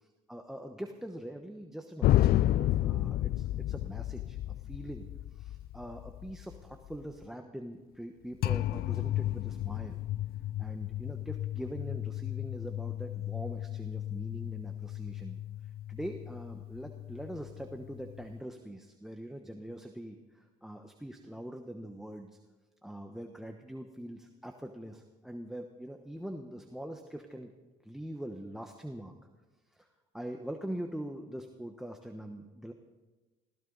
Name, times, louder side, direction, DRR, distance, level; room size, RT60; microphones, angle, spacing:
voice 1, 0.3-10.0 10.6-15.4 15.9-22.3 22.8-27.5 27.8-29.1 29.7-29.9 30.1-32.7, right 1 dB, ahead, 5 dB, 1.1 m, -43 dB
sound 1, 2.0-7.1 8.4-18.4, left 14 dB, 65° left, 0.4 m, -33 dB
21.5 x 16.0 x 4.0 m, 1.2 s
cardioid pair, 110°, 17 cm